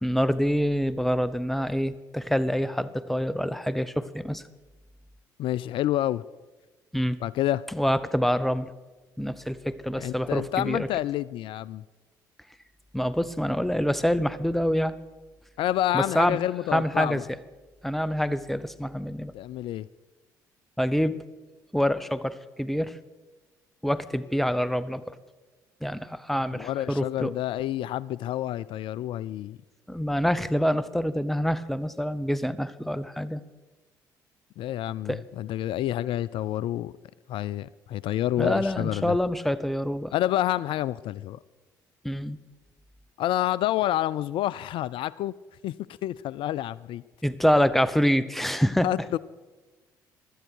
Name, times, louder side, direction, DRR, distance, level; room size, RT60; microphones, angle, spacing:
voice 1, 0.0-4.4 6.9-7.2 7.7-8.7 9.2-10.9 12.9-14.9 15.9-16.4 16.7-17.2 17.8-19.3 20.8-21.2 21.7-23.0 23.8-25.2 25.8-27.3 29.9-33.4 35.1-35.2 38.4-40.1 42.0-42.4 47.2-48.9, equal, ahead, 15 dB, 0.9 m, -26 dB
voice 2, 5.4-6.2 7.2-7.6 9.9-11.8 15.6-17.2 19.3-19.9 26.5-29.6 34.6-36.9 37.3-39.2 40.1-41.4 43.2-45.3 45.6-45.7 46.0-47.0 48.8-49.2, left 13 dB, 60° left, 20 dB, 0.3 m, -28 dB
16.0 x 12.5 x 4.6 m, 1.2 s
hypercardioid pair, 55°, 10 cm